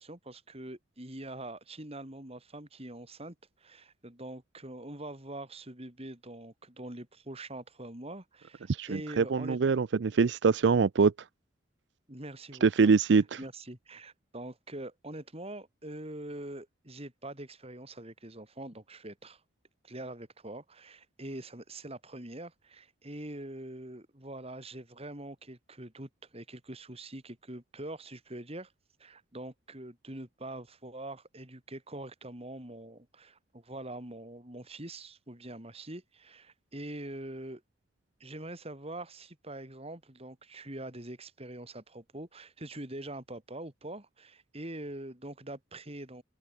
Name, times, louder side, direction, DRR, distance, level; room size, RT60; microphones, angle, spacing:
voice 1, 0.0-9.6 12.1-12.9 13.4-19.4 19.8-28.7 29.0-37.6 38.2-46.2, right 1 dB, 35° right, 4.1 m, -44 dB
voice 2, 8.7-11.1 12.6-13.4, right 5 dB, 70° right, 0.5 m, -24 dB
head